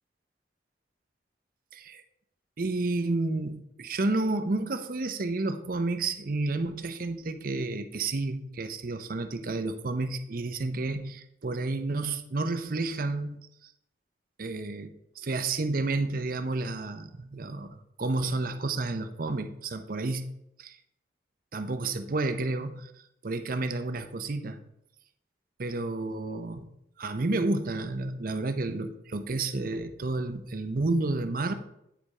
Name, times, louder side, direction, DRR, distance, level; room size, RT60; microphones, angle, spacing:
voice 1, 1.7-2.0 2.6-13.7 14.4-20.3 20.6-20.8 21.5-22.9 23.2-24.6 25.6-26.7 27.0-31.5, right 2 dB, 55° right, 9 dB, 0.7 m, -31 dB
8.8 x 5.2 x 4.8 m, 0.79 s
head